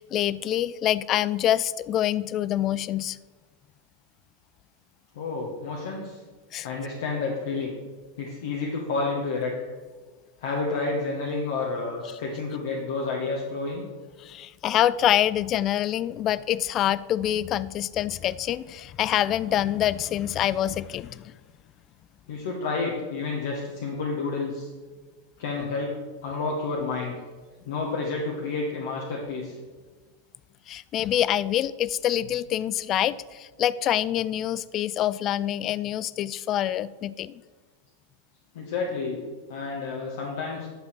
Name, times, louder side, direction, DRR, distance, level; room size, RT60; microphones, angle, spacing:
voice 1, 0.0-3.2 6.5-6.7 14.2-21.3 30.7-37.4, left 12 dB, 35° left, 18 dB, 0.3 m, -26 dB
voice 2, 5.1-6.2 6.6-7.8 8.2-9.5 10.4-13.8 22.3-24.7 25.4-25.9 26.2-27.1 27.7-29.6 38.5-40.7, left 3 dB, 55° left, -2 dB, 1.5 m, -30 dB
10.5 x 6.9 x 4.8 m, 1.4 s
figure-of-eight pair, 90°, 0 cm